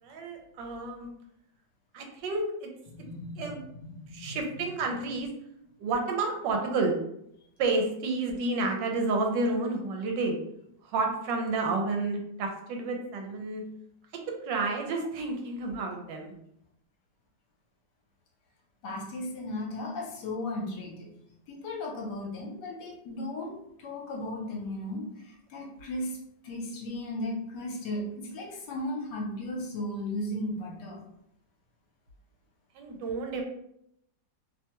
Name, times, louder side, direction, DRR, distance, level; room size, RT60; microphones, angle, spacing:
voice 1, 0.0-1.1 1.9-2.7 3.4-3.6 4.1-5.3 5.8-6.9 7.6-10.4 10.8-13.6 14.4-16.3 32.7-33.4, right 3 dB, 80° right, 2 dB, 1.2 m, -30 dB
voice 2, 2.9-4.4 18.8-21.1 21.5-26.2 26.4-31.0, left 1 dB, 70° left, -1 dB, 1.3 m, -36 dB
3.0 x 2.2 x 2.9 m, 0.76 s
omnidirectional pair, 2.0 m